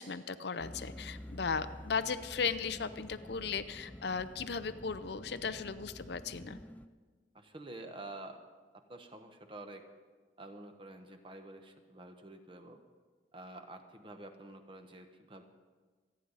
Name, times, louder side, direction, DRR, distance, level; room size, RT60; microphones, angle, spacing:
voice 1, 0.0-6.6, left 5 dB, 60° left, 11 dB, 0.6 m, -36 dB
sound 1, 0.6-6.9, left 1 dB, 10° left, 0.4 m, -49 dB
voice 2, 7.3-8.4 8.9-9.8 10.4-12.8 13.3-15.4, right 2 dB, 25° right, 6 dB, 1.0 m, -48 dB
27.5 x 9.8 x 4.0 m, 1.4 s
head